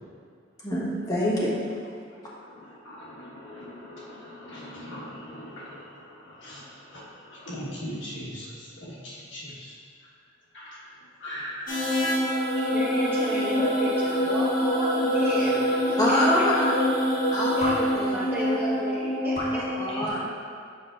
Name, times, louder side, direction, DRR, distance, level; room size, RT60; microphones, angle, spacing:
voice 1, 0.6-1.8 16.0-16.7 17.3-18.3 19.5-20.3, left 1 dB, 20° left, -7 dB, 1.2 m, -26 dB
voice 2, 2.4-9.7 10.5-10.9 11.2-11.8 12.1-12.3 17.3-17.5 18.4-18.5 19.6-20.0, equal, 75° left, -6 dB, 1.3 m, -40 dB
sound 1, 11.7-20.1, equal, 45° left, 1.2 m, -25 dB
voice 3, 12.6-16.2 17.6-17.7 18.1-19.8, right 1 dB, 10° right, -10 dB, 1.5 m, -33 dB
7.3 x 5.4 x 2.5 m, 2.2 s
head